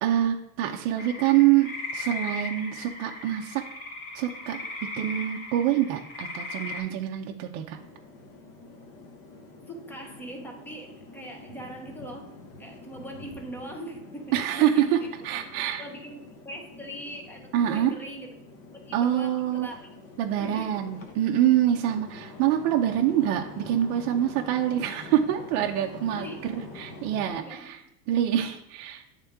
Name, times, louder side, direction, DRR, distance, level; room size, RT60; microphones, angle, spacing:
voice 1, 0.0-3.6 4.1-4.6 4.9-7.8 14.3-15.0 15.2-15.8 17.5-18.0 18.9-19.7 20.2-27.8 28.1-29.0, right 11 dB, 40° right, 1 dB, 0.6 m, -25 dB
sound 1, 1.0-6.8, left 2 dB, 60° left, 1.8 m, -37 dB
sound 2, 7.7-27.3, left 2 dB, 35° left, 0.9 m, -46 dB
voice 2, 9.7-15.1 15.8-18.3 18.9-19.9 20.4-20.7 25.7-25.9 26.1-26.6 27.3-27.7, right 1 dB, 5° left, 3 dB, 0.6 m, -41 dB
8.4 x 3.7 x 3.5 m, 0.80 s
supercardioid pair, 150°, 43 cm